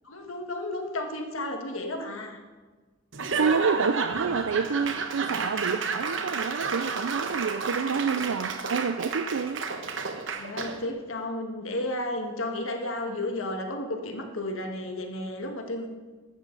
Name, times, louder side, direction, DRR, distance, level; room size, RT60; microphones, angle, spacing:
voice 1, 0.0-2.4 10.4-15.9, left 1 dB, 70° left, 3 dB, 1.6 m, -33 dB
Laughter / Applause / Crowd, 3.1-10.9, right 4 dB, 60° right, 1.0 m, -31 dB
voice 2, 3.4-9.6, right 5 dB, 80° right, 9 dB, 0.4 m, -28 dB
14.0 x 12.5 x 4.0 m, 1.4 s
head